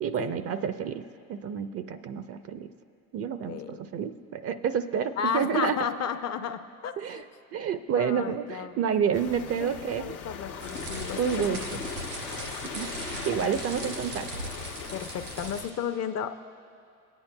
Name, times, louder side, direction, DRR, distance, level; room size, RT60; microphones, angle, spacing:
voice 1, 0.0-2.7 3.1-5.8 7.0-7.2 7.5-10.2 11.2-11.8 12.7-14.3, right 7 dB, 35° right, 11 dB, 0.4 m, -29 dB
voice 2, 5.2-6.9 7.9-8.8 9.6-11.7 14.9-16.4, left 8 dB, 40° left, 9 dB, 0.5 m, -33 dB
sound 1, 9.1-15.7, left 6 dB, 90° left, 1.0 m, -39 dB
sound 2, 10.6-15.8, right 2 dB, 85° right, 2.8 m, -39 dB
20.0 x 8.9 x 2.2 m, 2.3 s
hypercardioid pair, 75°, 43 cm